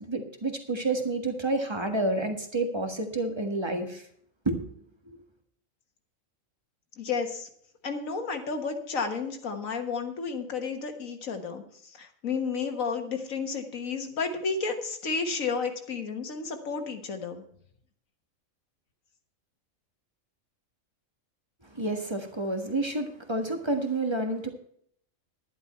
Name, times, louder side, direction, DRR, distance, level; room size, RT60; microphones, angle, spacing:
voice 1, 0.1-4.1 4.4-4.6 5.1-5.2 21.7-24.5, right 2 dB, 20° right, 4 dB, 1.5 m, -29 dB
voice 2, 7.0-7.5 7.8-17.4, left 5 dB, 80° left, 5 dB, 1.8 m, -32 dB
11.0 x 11.0 x 4.4 m, 0.65 s
omnidirectional pair, 1.4 m